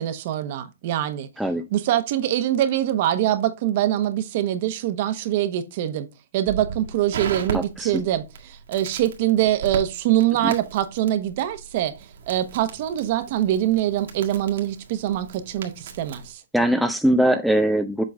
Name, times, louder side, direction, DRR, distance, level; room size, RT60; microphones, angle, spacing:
voice 1, 0.0-1.3 1.7-6.1 6.3-16.4, right 12 dB, 45° right, 1.0 m, -24 dB
Crackle, 6.5-16.3, right 6 dB, 70° right, 1.8 m, -37 dB
voice 2, 7.5-7.9 10.4-10.5 16.5-18.0, right 1 dB, ahead, 0.4 m, -21 dB
7.7 x 3.8 x 3.4 m
hypercardioid pair, 150°, 0 cm